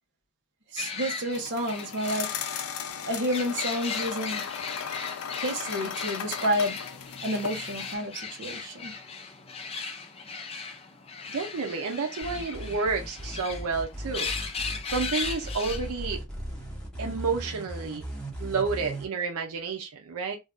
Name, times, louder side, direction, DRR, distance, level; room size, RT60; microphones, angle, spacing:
voice 1, 0.7-2.3 3.0-4.4 5.4-6.8 7.2-8.9, equal, 55° right, 0.9 m, -30 dB
sound 1, 0.8-16.2, left 5 dB, 25° left, 0.5 m, -37 dB
sound 2, 1.3-7.9, left 7 dB, 80° left, 0.5 m, -37 dB
voice 2, 11.3-14.3 14.9-16.2 17.0-18.1 18.4-20.4, right 4 dB, 90° right, 0.6 m, -30 dB
sound 3, 12.2-19.0, equal, 5° left, 1.0 m, -37 dB
2.6 x 2.3 x 3.5 m
head